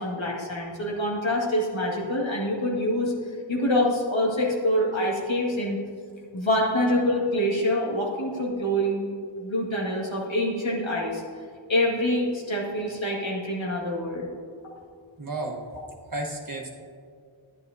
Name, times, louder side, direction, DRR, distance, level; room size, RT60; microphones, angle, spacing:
voice 1, 0.0-3.1 3.5-5.8 6.3-9.1 9.4-11.2 11.7-14.3, left 1 dB, 70° left, -3 dB, 2.0 m, -25 dB
voice 2, 15.2-15.6 16.1-16.7, right 2 dB, 45° right, -1 dB, 1.3 m, -32 dB
10.5 x 10.5 x 2.7 m, 2.2 s
wide cardioid pair, 60°, 48 cm